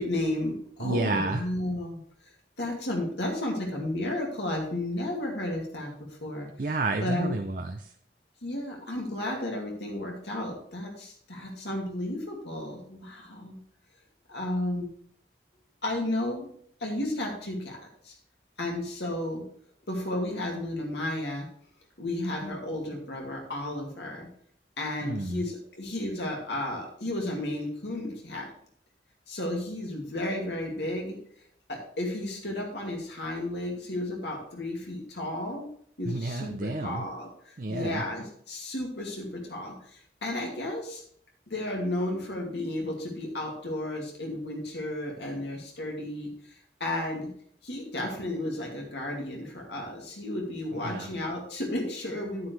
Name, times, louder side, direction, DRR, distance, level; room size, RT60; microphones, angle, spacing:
voice 1, 0.0-2.0 2.6-5.9 6.2-6.5 7.0-7.3 8.4-13.6 14.3-14.9 15.8-16.5 16.8-17.8 18.0-18.1 18.6-19.4 19.9-21.5 22.0-24.3 24.8-28.5 29.3-31.2 31.7-35.7 36.0-41.0 41.5-46.3 46.8-47.3 47.6-52.5, left 1 dB, 75° left, 0 dB, 2.3 m, -33 dB
voice 2, 0.8-1.4 6.6-7.9 25.0-25.4 36.0-37.1 37.6-38.0 50.7-51.1, right 2 dB, 50° right, 5 dB, 0.6 m, -30 dB
9.4 x 9.3 x 3.3 m, 0.62 s
head